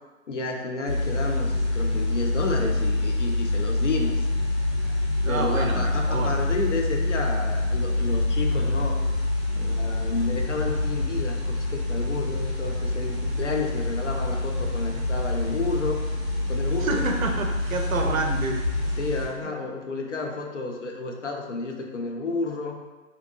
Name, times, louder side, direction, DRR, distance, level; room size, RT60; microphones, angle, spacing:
voice 1, 0.3-4.3 5.3-9.0 9.5-16.0 16.5-17.0 18.0-18.2 18.8-22.8, left 3 dB, 60° left, 1 dB, 0.5 m, -31 dB
sound 1, 0.8-19.3, left 2 dB, 20° right, 0.6 m, -26 dB
voice 2, 5.2-6.3 16.8-18.6, right 3 dB, 80° right, 3 dB, 0.5 m, -28 dB
2.6 x 2.2 x 2.6 m, 1.2 s
figure-of-eight pair, 165°, 41 cm